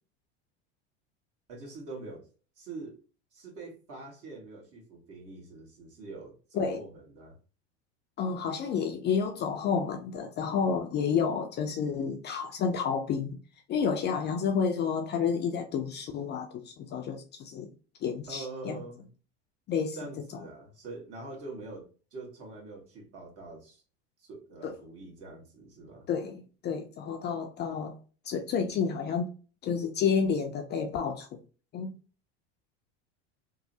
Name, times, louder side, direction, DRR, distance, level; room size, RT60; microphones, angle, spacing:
voice 1, 1.5-2.2 2.6-3.0 3.3-7.3 18.3-19.1 19.9-23.8 24.2-26.1, right 3 dB, 45° right, 1.5 m, -44 dB
voice 2, 8.2-13.4 13.7-17.7 18.0-18.8 19.7-20.0 24.6-24.7 26.1-28.0 28.2-29.3 29.6-31.4 31.7-32.0, left 6 dB, 30° left, 0.4 m, -30 dB
3.1 x 2.0 x 2.7 m
supercardioid pair, 105°, 33 cm